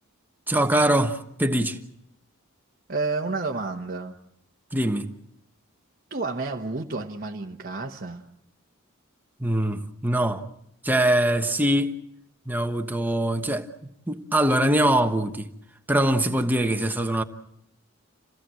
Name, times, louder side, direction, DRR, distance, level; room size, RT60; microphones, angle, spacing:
voice 1, 0.5-1.8 4.7-5.1 9.4-10.4 10.8-11.9 12.5-13.7 14.1-15.5 15.9-17.2, right 1 dB, 10° right, 1.2 m, -23 dB
voice 2, 2.9-4.1 6.1-8.2, right 3 dB, 45° right, 1.2 m, -30 dB
28.0 x 17.0 x 7.7 m
head